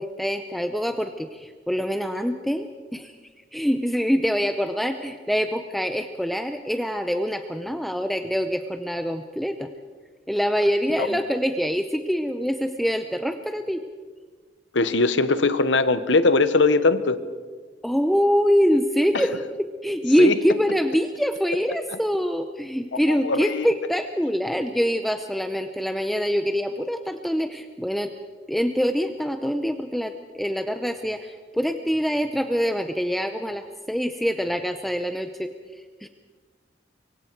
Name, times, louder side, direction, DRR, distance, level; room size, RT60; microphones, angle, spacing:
voice 1, 0.0-3.1 3.5-9.7 10.3-13.8 17.8-28.1 28.5-35.5 36.0-36.1, equal, ahead, 7 dB, 0.7 m, -25 dB
voice 2, 14.7-17.2 19.1-19.3 20.2-20.4 23.1-23.7, left 3 dB, 85° left, 13 dB, 1.1 m, -20 dB
24.5 x 24.0 x 4.6 m, 1.5 s
head